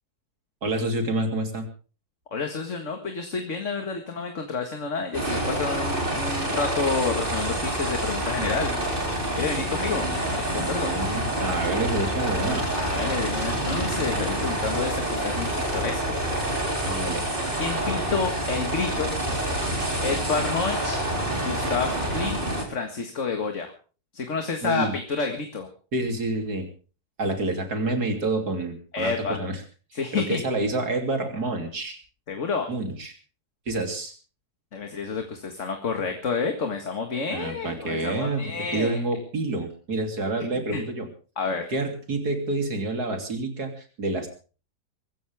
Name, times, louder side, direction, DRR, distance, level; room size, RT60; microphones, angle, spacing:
voice 1, 0.6-1.7 10.5-12.7 16.8-17.2 24.6-24.9 25.9-26.7 27.2-29.6 29.9-32.0 32.7-33.1 33.7-34.1 37.3-41.1 41.7-44.3, right 2 dB, 75° right, 5 dB, 3.7 m, -28 dB
voice 2, 2.3-8.7 9.4-11.0 12.7-16.1 17.6-19.2 20.0-21.1 21.4-22.4 22.7-23.7 24.1-25.7 28.9-29.4 29.9-30.4 32.3-32.7 34.7-39.0 40.7-40.8 41.4-41.7, left 4 dB, 50° left, 5 dB, 2.1 m, -29 dB
sound 1, 5.1-22.6, right 1 dB, 35° right, 4.1 m, -27 dB
24.0 x 15.0 x 3.6 m, 0.37 s
omnidirectional pair, 1.7 m